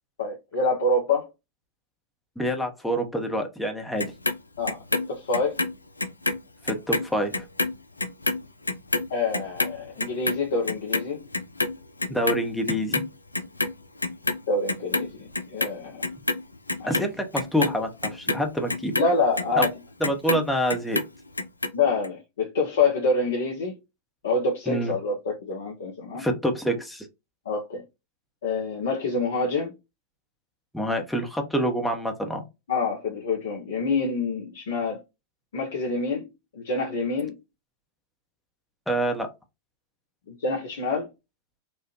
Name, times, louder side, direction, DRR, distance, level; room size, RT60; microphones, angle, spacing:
voice 1, 0.2-1.3 4.6-4.8 5.1-5.6 9.1-11.2 14.5-16.1 16.8-16.9 18.9-19.7 21.7-23.8 24.2-26.2 27.4-27.8 28.4-29.7 32.7-35.0 35.5-37.3 40.3-41.1, left 3 dB, 60° left, 0.9 m, -26 dB
voice 2, 2.4-4.1 6.6-7.4 12.1-13.0 16.8-18.9 19.6-19.7 20.0-21.0 24.7-24.9 26.2-27.1 30.7-32.4 38.9-39.3, equal, 5° left, 1.0 m, -26 dB
Clock, 4.0-6.4 6.7-13.1 13.3-14.4 14.7-15.7 16.0-20.4 20.7-21.7 22.0-22.1, left 2 dB, 80° left, 0.4 m, -27 dB
4.2 x 2.4 x 3.0 m
figure-of-eight pair, 90°, 0 cm